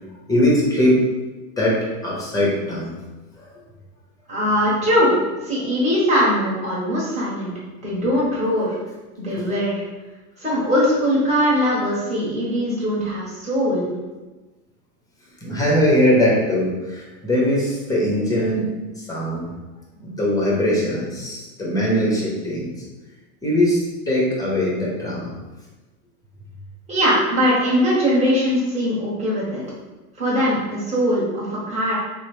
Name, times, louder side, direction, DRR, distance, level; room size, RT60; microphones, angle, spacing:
voice 1, 0.3-1.0 1.6-3.0 3.4-3.5 9.4-9.5 15.4-19.5 20.0-22.7 23.4-25.3, left 1 dB, 10° left, -4 dB, 0.8 m, -21 dB
voice 2, 4.3-7.5 7.8-8.8 9.2-9.8 10.4-13.9 26.9-29.6 30.2-32.0, equal, 15° right, -7 dB, 1.2 m, -21 dB
3.0 x 2.1 x 3.1 m, 1.2 s
hypercardioid pair, 110°, 47 cm